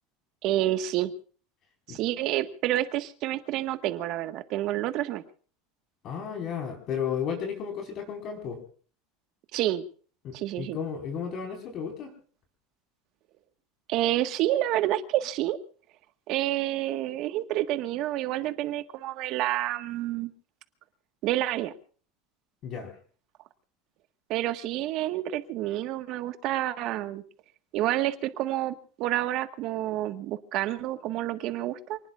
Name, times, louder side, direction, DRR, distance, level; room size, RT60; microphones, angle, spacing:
voice 1, 0.4-1.1 1.9-5.2 9.5-9.8 10.3-10.8 13.9-15.6 16.3-20.3 21.2-21.7 24.3-27.2 27.7-32.0, right 14 dB, 50° right, 9 dB, 1.5 m, -29 dB
voice 2, 6.0-8.6 10.2-12.1 22.6-22.9, left 7 dB, 40° left, 2 dB, 4.9 m, -33 dB
28.5 x 19.5 x 2.5 m, 0.42 s
supercardioid pair, 150°, 0 cm